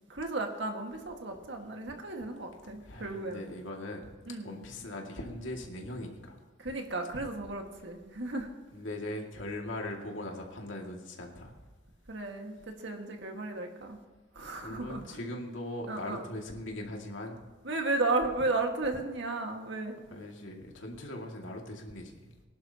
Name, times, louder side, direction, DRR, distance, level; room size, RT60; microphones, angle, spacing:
voice 1, 0.1-3.5 4.3-4.6 6.6-8.5 12.1-14.0 14.4-15.2 15.9-16.3 17.6-20.0, right 2 dB, 65° right, 3 dB, 1.8 m, -34 dB
voice 2, 2.8-4.1 4.4-6.4 8.7-11.6 14.6-17.4 20.1-22.3, left 1 dB, 80° left, 0 dB, 2.3 m, -40 dB
20.5 x 11.5 x 2.9 m, 1.4 s
head